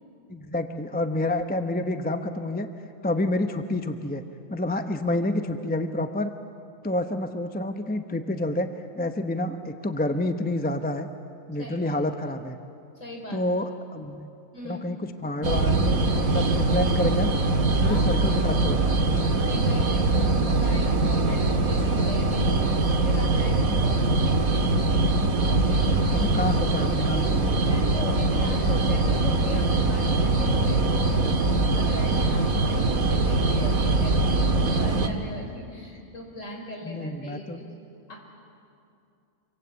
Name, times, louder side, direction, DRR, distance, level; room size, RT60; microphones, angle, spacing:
voice 1, 0.3-2.7 3.0-4.2 4.5-6.3 6.8-11.1 11.5-12.6 13.3-14.3 14.6-16.0 16.3-17.3 17.8-18.9 25.4-25.7 26.1-27.7 36.8-37.6, left 1 dB, 10° left, 7 dB, 0.7 m, -28 dB
voice 2, 11.6-11.9 13.0-13.4 14.5-14.8 17.8-18.3 19.3-24.6 27.7-37.7 38.1-38.2, equal, 60° left, 1 dB, 4.9 m, -38 dB
sound 1, 15.4-35.1, right 2 dB, 85° right, 2.1 m, -22 dB
26.5 x 25.0 x 8.2 m, 2.6 s
omnidirectional pair, 1.5 m